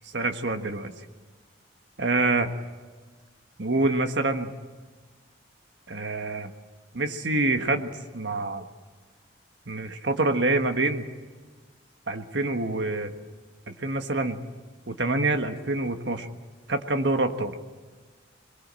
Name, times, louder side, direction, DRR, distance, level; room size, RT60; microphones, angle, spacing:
voice 1, 0.1-0.9 2.0-2.5 3.6-4.5 5.9-6.5 6.9-8.7 9.7-11.1 12.1-13.1 13.7-14.4 14.9-16.3 16.7-17.5, right 2 dB, 65° right, 6 dB, 1.5 m, -26 dB
22.5 x 22.5 x 7.6 m, 1.4 s
head